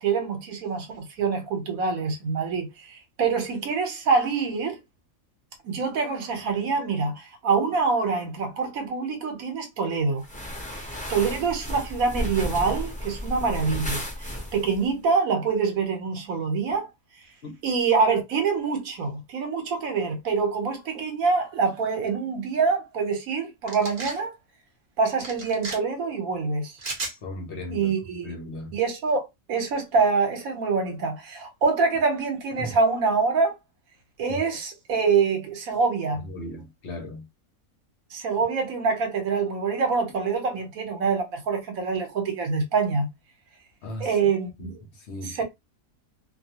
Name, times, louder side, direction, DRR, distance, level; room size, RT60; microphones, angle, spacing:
voice 1, 0.0-4.8 5.6-10.2 10.8-16.8 17.6-24.3 25.0-26.7 27.7-28.3 28.7-33.5 34.2-36.2 38.1-43.1 44.0-44.8 45.2-45.4, right 5 dB, 75° right, 1.2 m, -25 dB
sound 1, 10.2-14.9, equal, 10° left, 0.6 m, -33 dB
sound 2, 23.7-24.2 25.2-25.8 26.8-27.2, right 2 dB, 40° right, 0.7 m, -34 dB
voice 2, 27.2-27.9 28.2-28.7 32.6-32.7 34.3-34.4 36.2-37.3 43.8-44.1 44.6-44.7 45.0-45.4, left 1 dB, 55° left, 0.9 m, -36 dB
2.5 x 2.2 x 2.8 m
omnidirectional pair, 1.5 m